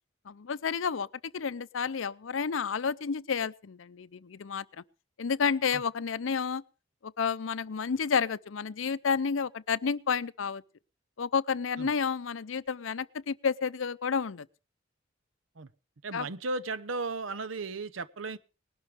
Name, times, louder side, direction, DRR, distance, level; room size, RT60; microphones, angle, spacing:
voice 1, 0.3-4.8 5.2-6.6 7.0-10.6 11.2-14.5 16.1-16.3, left 6 dB, 80° left, 0.6 m, -30 dB
voice 2, 16.0-18.4, right 3 dB, 85° right, 0.9 m, -35 dB
19.5 x 12.0 x 3.5 m
head